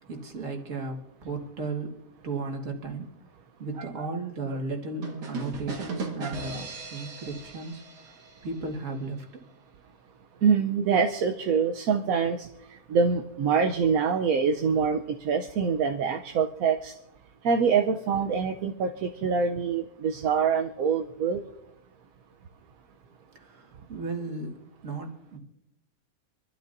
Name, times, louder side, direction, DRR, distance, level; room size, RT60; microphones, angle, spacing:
voice 1, 0.0-2.0 2.2-3.1 3.6-8.1 8.4-9.4 23.4-25.4, right 3 dB, 50° right, 2 dB, 2.0 m, -35 dB
sound 1, 5.0-8.8, right 3 dB, 90° right, 2.2 m, -37 dB
voice 2, 10.4-12.5 12.9-16.9 17.4-21.4, right 6 dB, 65° right, 4 dB, 1.1 m, -25 dB
26.5 x 12.5 x 2.6 m, 0.86 s
omnidirectional pair, 1.7 m